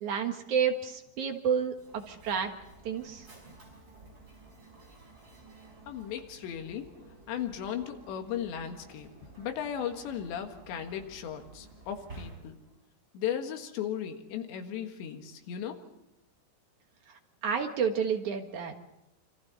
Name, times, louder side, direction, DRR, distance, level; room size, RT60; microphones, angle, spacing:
voice 1, 0.0-2.5 2.8-3.3 17.1-18.8, right 7 dB, 60° right, 4 dB, 2.1 m, -30 dB
Mechanisms, 1.7-12.8, right 2 dB, 20° right, 5.9 m, -53 dB
voice 2, 5.9-7.0 7.3-9.1 9.4-12.6 13.1-15.8, left 9 dB, 70° left, 5 dB, 3.8 m, -36 dB
28.0 x 25.0 x 4.1 m, 0.87 s
omnidirectional pair, 5.4 m